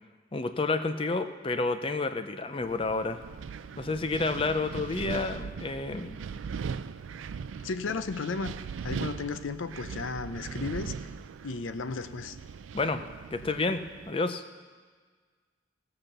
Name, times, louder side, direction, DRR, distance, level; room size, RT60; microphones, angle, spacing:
voice 1, 0.3-3.2 3.8-6.2 12.7-13.0 13.3-13.8 14.1-14.4, left 3 dB, 25° left, 9 dB, 0.5 m, -30 dB
Wind, 2.6-14.1, right 6 dB, 85° right, 0.4 m, -40 dB
voice 2, 7.6-8.6 8.8-10.9 11.4-12.4, left 4 dB, 85° left, 12 dB, 0.6 m, -34 dB
17.0 x 5.8 x 6.7 m, 1.5 s
head